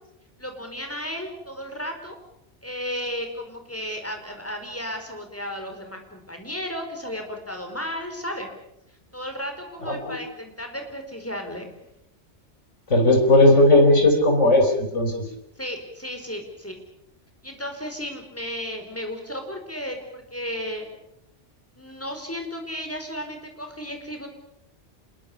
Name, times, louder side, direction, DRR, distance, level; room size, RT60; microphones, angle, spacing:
voice 1, 0.4-2.2 2.6-8.5 9.1-11.7 15.6-16.8 17.4-20.9 21.8-24.3, equal, 10° left, 4 dB, 4.8 m, -34 dB
voice 2, 12.9-15.1, left 1 dB, 80° left, 4 dB, 4.6 m, -16 dB
27.0 x 21.5 x 7.0 m, 0.80 s
omnidirectional pair, 1.2 m